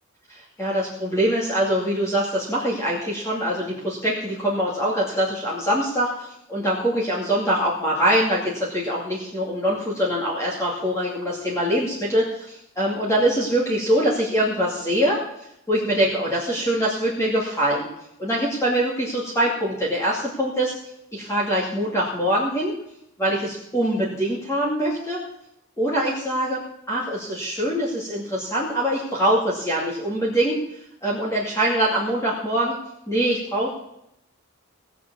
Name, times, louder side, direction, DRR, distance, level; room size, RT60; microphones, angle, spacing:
voice 1, 0.3-15.2 15.7-17.9 18.2-20.7 21.1-22.7 23.2-25.2 25.8-26.6 26.9-30.6 31.0-32.8 33.1-33.7, right 1 dB, 15° left, -5 dB, 2.5 m, -23 dB
18.5 x 7.1 x 7.0 m, 0.79 s
head